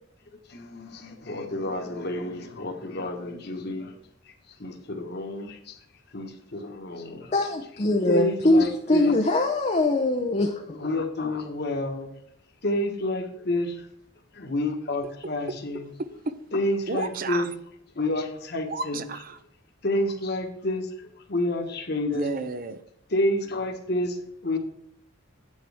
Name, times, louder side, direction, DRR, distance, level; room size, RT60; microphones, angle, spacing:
voice 1, 0.5-4.0 4.2-5.8 6.1-7.3 8.1-9.1 10.5-12.1 12.6-13.9 14.3-15.9 16.5-17.5 17.9-19.0 19.8-22.3 23.1-24.6, left 1 dB, 50° left, 1.4 m, -29 dB
voice 2, 7.3-10.6, left 2 dB, 30° left, 0.6 m, -22 dB
voice 3, 16.0-16.3 16.9-17.5 18.7-19.4 22.1-22.8, right 3 dB, 45° right, 0.6 m, -31 dB
9.0 x 8.7 x 3.5 m
head